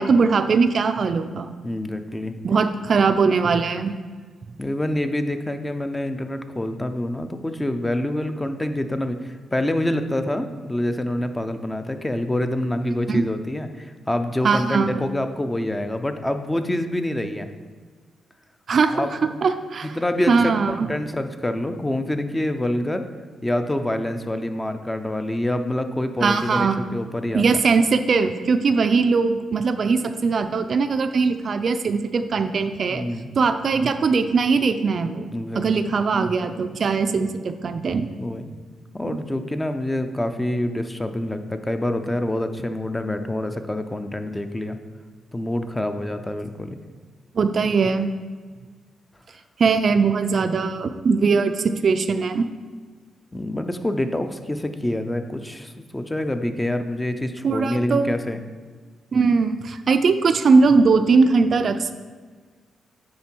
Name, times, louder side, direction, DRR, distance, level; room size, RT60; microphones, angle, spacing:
voice 1, 0.0-1.5 2.4-3.9 13.1-13.2 14.4-15.0 18.7-19.1 19.4-20.0 20.3-20.9 26.2-26.8 27.3-33.0 33.4-38.1 47.3-48.1 49.6-52.5 57.4-58.1 59.1-61.9, right 4 dB, 50° right, 9 dB, 0.4 m, -20 dB
voice 2, 1.6-2.4 4.6-17.5 18.9-19.4 19.8-23.1 23.4-27.5 32.9-33.3 35.3-36.0 38.2-38.4 38.9-44.8 45.3-46.8 53.3-58.4, left 1 dB, 15° left, 8 dB, 0.5 m, -26 dB
9.5 x 3.8 x 4.5 m, 1.5 s
cardioid pair, 90°, 0 cm